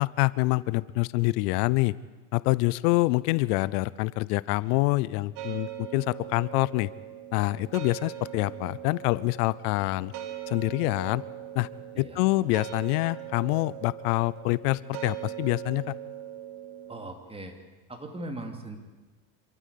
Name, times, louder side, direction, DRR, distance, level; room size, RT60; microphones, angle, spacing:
voice 1, 0.0-1.9 2.3-6.9 7.3-10.1 10.5-11.2 11.5-11.7 12.0-15.9, left 21 dB, 80° left, 20 dB, 0.7 m, -26 dB
sound 1, 5.4-17.1, right 11 dB, 65° right, 2.7 m, -40 dB
voice 2, 16.9-17.5 17.9-18.8, right 1 dB, 10° right, 4 dB, 2.8 m, -39 dB
27.0 x 13.5 x 8.4 m, 1.3 s
cardioid pair, 130°, 45 cm